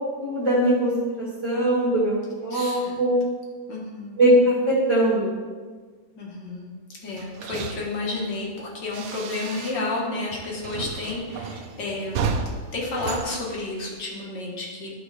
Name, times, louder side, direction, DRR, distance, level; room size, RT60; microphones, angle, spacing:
voice 1, 0.2-3.2 4.2-5.3, right 1 dB, 35° right, -9 dB, 2.3 m, -21 dB
voice 2, 2.5-3.0 3.7-4.2 6.2-6.7 7.0-12.3 12.7-14.9, left 2 dB, 60° left, -3 dB, 2.1 m, -31 dB
sound 1, 7.1-10.0 10.3-14.2, right 5 dB, 85° right, 1.6 m, -33 dB
11.5 x 4.5 x 4.2 m, 1.5 s
omnidirectional pair, 2.3 m